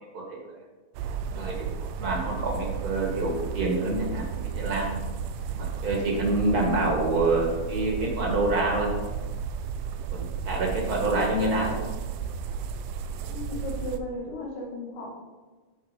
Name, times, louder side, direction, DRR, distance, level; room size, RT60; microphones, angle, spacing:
sound 1, 0.9-14.0, right 6 dB, 90° right, 2.2 m, -33 dB
voice 1, 2.0-4.8 5.5-8.9 10.1-11.8, right 2 dB, 35° right, -2 dB, 1.7 m, -27 dB
voice 2, 13.3-15.1, left 1 dB, 60° left, -3 dB, 3.4 m, -35 dB
11.0 x 4.5 x 5.2 m, 1.3 s
omnidirectional pair, 3.7 m